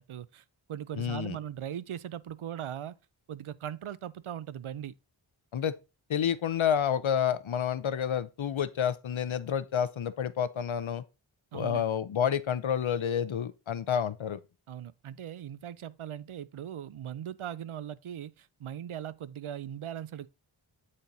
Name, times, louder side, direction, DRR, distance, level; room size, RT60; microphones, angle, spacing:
voice 1, 0.0-3.0 3.3-5.0 11.5-11.8 14.7-20.3, right 10 dB, 75° right, 0.6 m, -39 dB
voice 2, 1.0-1.4 5.5-5.7 6.1-11.0 11.5-14.4, left 8 dB, 70° left, 0.7 m, -29 dB
8.7 x 4.3 x 3.9 m
wide cardioid pair, 60°, 50 cm